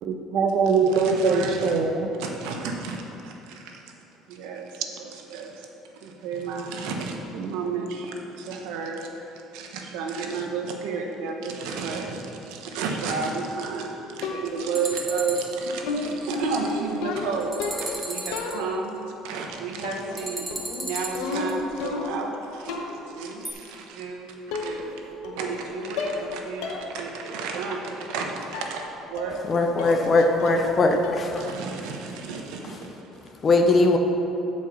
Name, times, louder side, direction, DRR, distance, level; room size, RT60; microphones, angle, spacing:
voice 1, 0.0-2.1 7.4-7.6, right 4 dB, 45° right, 5 dB, 0.7 m, -22 dB
voice 2, 0.7-1.7 2.2-3.8 4.3-5.7 5.9-9.1 9.5-19.0 19.2-24.9 25.2-31.0 31.4-33.1, right 4 dB, 85° right, 2 dB, 1.1 m, -32 dB
sound 1, 14.2-14.8 15.9-18.0 18.3-19.0 19.8-20.2 20.5-22.3 22.7-23.1 24.0-24.1 24.5-25.0 25.2-25.6 26.0-26.3 26.6-26.9 27.3-27.4 28.5-28.8 29.2-29.5 29.8-30.1 30.4-30.8 31.0-31.4, left 4 dB, 80° left, 1.0 m, -32 dB
sound 2, 14.8-15.6 17.4-18.6 20.2-21.5 23.5-23.6, right 1 dB, 10° right, 0.8 m, -34 dB
voice 3, 29.5-31.3 33.4-34.0, left 3 dB, 25° left, 4 dB, 0.6 m, -20 dB
7.8 x 5.3 x 6.8 m, 3.0 s
cardioid pair, 175°, 0 cm